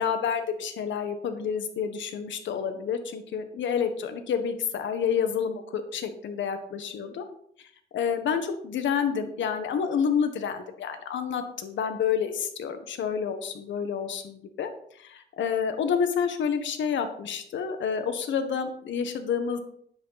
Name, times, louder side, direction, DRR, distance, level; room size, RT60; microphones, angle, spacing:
voice 1, 0.0-7.2 7.9-14.7 15.0-19.6, left 7 dB, 70° left, 8 dB, 1.5 m, -29 dB
9.6 x 8.3 x 4.1 m, 0.65 s
cardioid pair, 90°, 20 cm